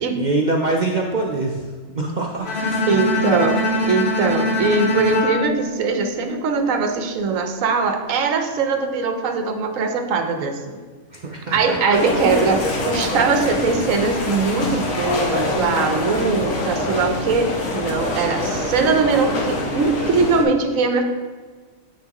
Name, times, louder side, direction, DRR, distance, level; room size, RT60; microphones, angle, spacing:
voice 1, 0.0-2.8 3.2-3.5 11.1-12.0, right 2 dB, 55° right, 0 dB, 0.5 m, -25 dB
Bowed string instrument, 2.4-6.6, left 1 dB, 55° left, 1.1 m, -23 dB
voice 2, 2.9-3.6 3.8-10.8 11.5-21.0, right 4 dB, 75° right, 5 dB, 1.1 m, -21 dB
sound 1, 11.9-20.4, left 2 dB, 80° left, 1.4 m, -25 dB
7.3 x 5.9 x 2.9 m, 1.5 s
omnidirectional pair, 1.4 m